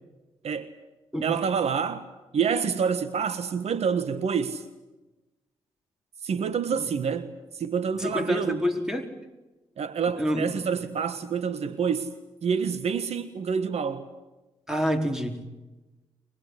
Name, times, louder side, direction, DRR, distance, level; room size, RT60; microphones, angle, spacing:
voice 1, 1.2-2.1 2.3-4.6 6.2-8.6 9.8-12.2 12.4-14.1, right 6 dB, 65° right, 1.5 m, -27 dB
voice 2, 8.0-9.1 10.2-10.5 14.7-15.5, equal, 5° right, 4.7 m, -27 dB
24.0 x 20.0 x 9.7 m
supercardioid pair, 55°, 12 cm